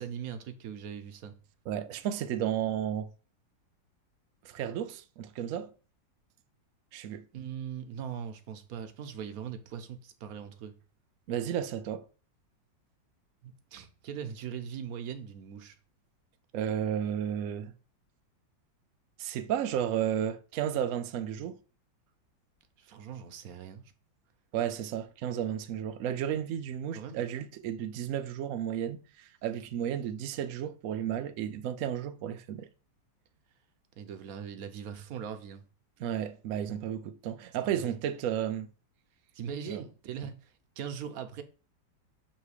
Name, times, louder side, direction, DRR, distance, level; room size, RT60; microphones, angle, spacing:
voice 1, 0.0-1.4 7.3-10.7 13.4-15.8 22.8-23.8 26.9-27.2 34.0-35.6 37.7-38.0 39.3-41.4, right 8 dB, 60° right, 1.0 m, -40 dB
voice 2, 1.7-3.1 4.4-5.7 6.9-7.3 11.3-12.0 16.5-17.7 19.2-21.6 24.5-32.7 36.0-38.7 39.7-39.8, right 10 dB, 90° right, 0.7 m, -33 dB
6.4 x 3.1 x 4.9 m
omnidirectional pair, 2.0 m